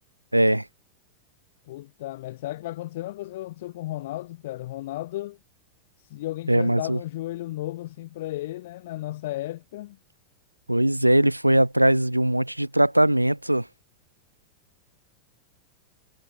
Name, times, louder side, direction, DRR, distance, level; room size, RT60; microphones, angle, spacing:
voice 1, 0.3-0.7 6.5-7.0 10.7-13.7, right 1 dB, 85° right, 0.3 m, -20 dB
voice 2, 1.7-5.4 6.0-10.0, left 16 dB, 55° left, 0.8 m, -34 dB
figure-of-eight pair, 90°, 0 cm